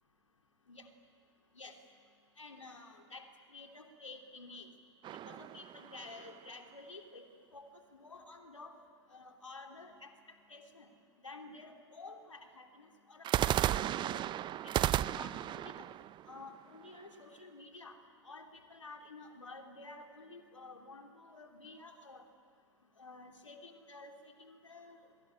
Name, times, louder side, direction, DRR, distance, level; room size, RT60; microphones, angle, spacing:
voice 1, 2.4-4.7 5.1-7.3 7.5-8.8 9.1-10.9 11.2-14.3 14.6-15.9 16.3-18.0 18.2-22.2 23.0-25.1, left 3 dB, 90° left, 4 dB, 3.0 m, -51 dB
sound 1, 5.0-6.5 13.2-17.2, right 12 dB, 30° right, 0.6 m, -34 dB
27.5 x 22.5 x 8.8 m, 2.1 s
figure-of-eight pair, 90°, 15 cm